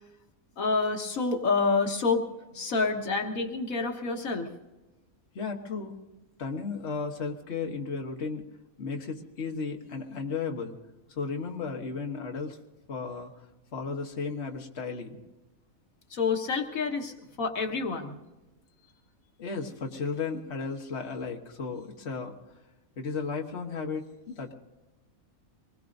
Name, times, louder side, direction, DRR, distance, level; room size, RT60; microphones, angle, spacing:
voice 1, 0.6-2.2 2.5-4.5 16.1-18.2, left 4 dB, 80° left, 3 dB, 1.8 m, -28 dB
voice 2, 5.4-6.0 6.4-8.5 8.8-10.8 11.1-12.6 12.9-13.3 13.7-15.2 19.4-22.4 23.0-24.5, left 4 dB, 50° left, 2 dB, 1.6 m, -34 dB
25.0 x 20.5 x 2.6 m, 1.1 s
omnidirectional pair, 1.4 m